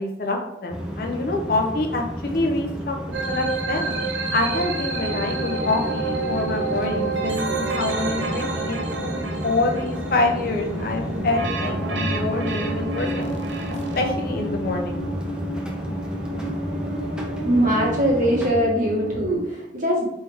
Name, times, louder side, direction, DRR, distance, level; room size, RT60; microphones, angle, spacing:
voice 1, 0.0-3.0 3.3-3.9 4.3-13.3 13.9-15.0, left 2 dB, 55° left, 2 dB, 0.6 m, -26 dB
sound 1, 0.7-18.5, equal, 5° right, 0.6 m, -33 dB
sound 2, 3.1-14.0, right 4 dB, 85° right, 0.6 m, -30 dB
sound 3, 5.0-19.4, equal, 65° right, 1.3 m, -32 dB
voice 2, 17.4-20.1, equal, 45° right, -4 dB, 1.4 m, -21 dB
4.7 x 3.2 x 3.4 m, 0.89 s
head